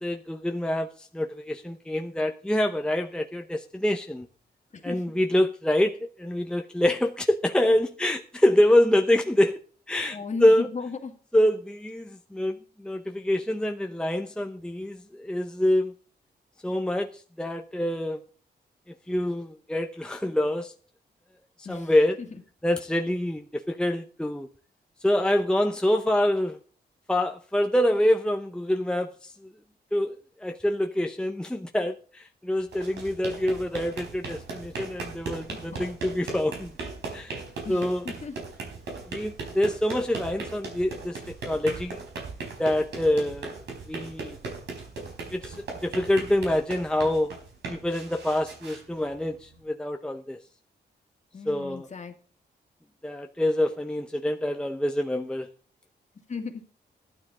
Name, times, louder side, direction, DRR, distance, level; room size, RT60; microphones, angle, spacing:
voice 1, 0.0-4.3 4.8-9.6 9.9-10.7 11.3-15.9 16.6-18.2 18.9-20.7 21.7-22.2 22.6-24.5 25.0-26.6 27.1-29.3 29.9-30.1 30.4-36.7 37.1-37.4 37.7-38.1 39.1-42.0 42.6-44.4 45.3-47.3 47.7-50.4 51.5-51.9 53.0-55.5, left 1 dB, 5° left, 4 dB, 0.8 m, -26 dB
voice 2, 10.1-11.1 21.6-21.9 35.5-35.8 37.6-38.4 51.3-52.1 56.3-56.6, left 5 dB, 40° left, 5 dB, 2.1 m, -36 dB
sound 1, 32.6-49.6, right 3 dB, 85° right, 4.0 m, -38 dB
13.5 x 12.0 x 3.8 m, 0.41 s
cardioid pair, 85°, 18 cm